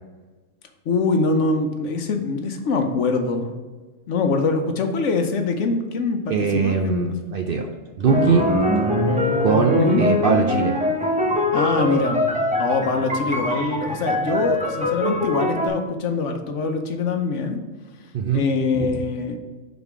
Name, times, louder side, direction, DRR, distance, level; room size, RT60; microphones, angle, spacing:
voice 1, 0.9-3.5 4.1-7.2 9.8-10.0 11.5-12.3 12.6-17.6 18.3-19.4, left 4 dB, 70° left, 5 dB, 1.0 m, -23 dB
voice 2, 6.3-7.7 8.0-8.5 9.4-10.8 18.1-18.5 18.7-18.9, right 5 dB, 60° right, 3 dB, 0.6 m, -21 dB
sound 1, 8.1-15.7, left 1 dB, 10° right, 0.5 m, -22 dB
5.3 x 4.0 x 4.6 m, 1.3 s
omnidirectional pair, 1.4 m